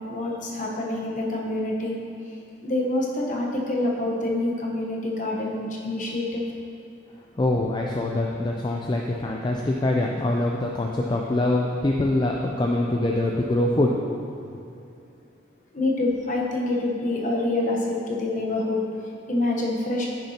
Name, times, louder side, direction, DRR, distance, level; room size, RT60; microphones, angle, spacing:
voice 1, 0.1-1.9 2.6-6.4 15.7-18.8 19.3-20.1, left 2 dB, 40° left, -2 dB, 0.9 m, -26 dB
voice 2, 7.4-14.0, left 1 dB, 20° left, -1 dB, 0.3 m, -24 dB
9.7 x 6.6 x 2.8 m, 2.5 s
head